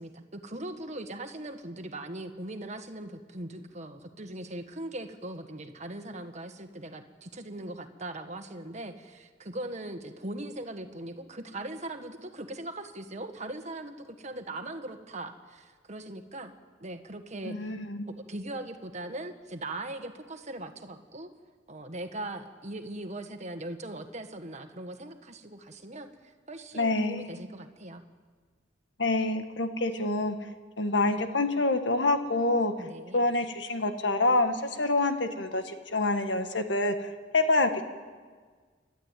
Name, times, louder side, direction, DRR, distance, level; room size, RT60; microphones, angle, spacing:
voice 1, 0.0-16.5 16.8-17.7 18.2-21.3 21.7-28.0 32.8-33.2, right 1 dB, 40° right, 6 dB, 1.6 m, -40 dB
voice 2, 17.4-18.1 26.7-27.3 29.0-30.3 30.8-32.9 33.1-37.8, left 2 dB, 70° left, 7 dB, 1.7 m, -27 dB
29.5 x 12.0 x 9.2 m, 1.5 s
head